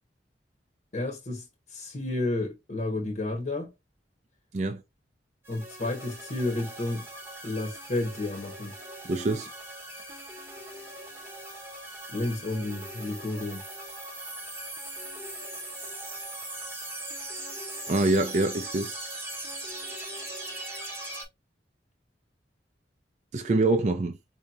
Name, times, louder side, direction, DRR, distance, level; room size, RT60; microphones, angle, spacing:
voice 1, 0.9-3.7 5.5-7.0 7.4-8.7 12.1-13.6, left 2 dB, 45° left, 0.9 m, -31 dB
sound 1, 5.4-21.2, right 1 dB, 15° right, 0.9 m, -40 dB
voice 2, 9.0-9.5 17.9-19.0 23.3-24.2, right 2 dB, 40° right, 0.4 m, -25 dB
4.7 x 2.8 x 2.4 m
head